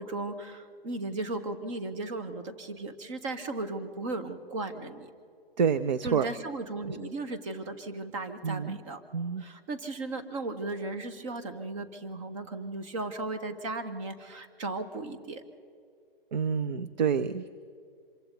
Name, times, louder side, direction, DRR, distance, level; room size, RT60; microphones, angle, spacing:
voice 1, 0.0-5.1 6.0-9.0 9.4-15.4, right 2 dB, 35° right, 8 dB, 1.9 m, -36 dB
voice 2, 5.6-6.3 8.4-8.8 9.1-9.4 16.3-17.5, right 6 dB, 50° right, 13 dB, 0.8 m, -28 dB
26.5 x 23.5 x 4.1 m, 2.2 s
figure-of-eight pair, 130°, 30 cm